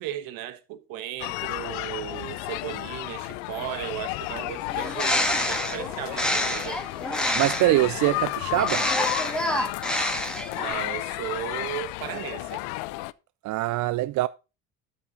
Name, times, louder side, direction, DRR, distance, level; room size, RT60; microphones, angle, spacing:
voice 1, 0.0-6.8 10.5-12.6, right 12 dB, 75° right, 1.2 m, -36 dB
sound 1, 1.2-13.1, left 20 dB, 85° left, 0.6 m, -33 dB
Bird, 4.7-7.8 8.5-10.7, left 1 dB, ahead, 2.5 m, -27 dB
voice 2, 7.3-8.8 13.4-14.3, right 17 dB, 55° right, 0.4 m, -23 dB
13.0 x 5.9 x 4.0 m
supercardioid pair, 100°, 35 cm